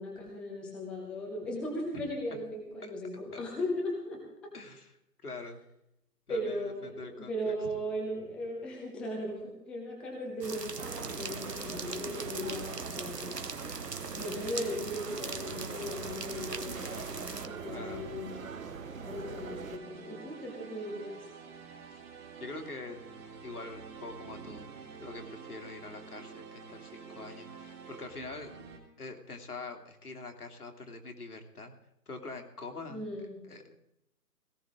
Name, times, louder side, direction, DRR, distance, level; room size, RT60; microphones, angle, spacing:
voice 1, 0.0-4.2 6.3-13.4 14.1-18.4 19.0-21.2 32.9-33.4, equal, ahead, -2 dB, 0.9 m, -37 dB
voice 2, 4.5-4.9 5.2-5.6 6.3-7.5 17.7-18.1 21.9-22.0 22.4-23.0 23.4-24.7 25.0-28.5 29.0-31.7 32.1-33.1 33.4-33.7, left 3 dB, 70° left, 4 dB, 2.9 m, -44 dB
sound 1, 10.4-17.5, right 4 dB, 85° right, 1.5 m, -41 dB
sound 2, 10.8-19.8, right 6 dB, 55° right, 1.1 m, -43 dB
sound 3, 11.1-28.8, right 6 dB, 15° right, 1.9 m, -49 dB
18.0 x 17.0 x 3.7 m, 0.83 s
figure-of-eight pair, 145°, 47 cm